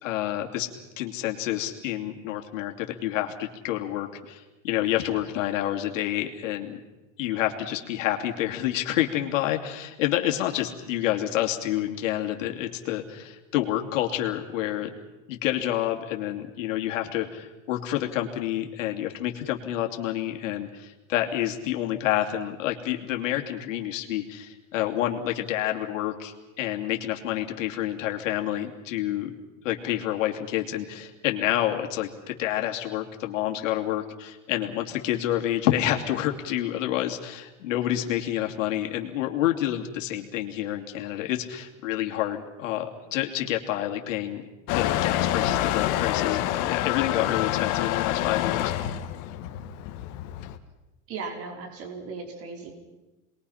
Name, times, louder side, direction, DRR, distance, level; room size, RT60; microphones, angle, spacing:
voice 1, 0.0-0.7 1.0-6.8 7.2-14.9 15.3-29.3 29.6-44.4 44.7-48.7, left 13 dB, 85° left, 2 dB, 2.9 m, -28 dB
Motor vehicle (road) / Engine starting / Accelerating revving vroom, 44.7-50.6, left 13 dB, 50° left, 1.7 m, -27 dB
voice 2, 51.1-52.7, right 4 dB, 40° right, 3 dB, 4.9 m, -37 dB
28.5 x 21.5 x 5.8 m, 1.0 s
supercardioid pair, 150°, 37 cm